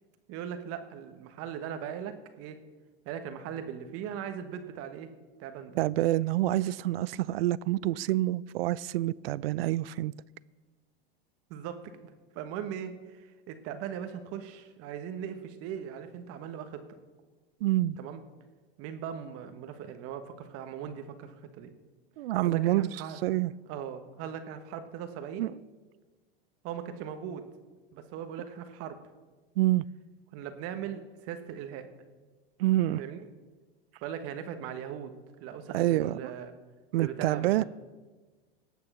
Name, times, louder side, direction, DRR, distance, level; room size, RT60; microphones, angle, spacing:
voice 1, 0.3-2.6 3.0-5.1 5.4-5.8 11.5-16.8 18.0-18.2 18.8-21.7 22.4-23.2 23.7-25.5 26.6-27.4 27.9-29.0 30.3-31.9 33.0-33.2 34.0-36.5 37.0-37.6, right 8 dB, 50° right, 1.3 m, -39 dB
voice 2, 5.8-10.1 17.6-18.0 22.2-22.9 23.2-23.5 25.4-25.5 29.6-29.8 32.6-33.0 35.7-36.3 36.9-37.6, right 15 dB, 75° right, 0.5 m, -27 dB
18.0 x 6.9 x 6.1 m
hypercardioid pair, 100°, 30 cm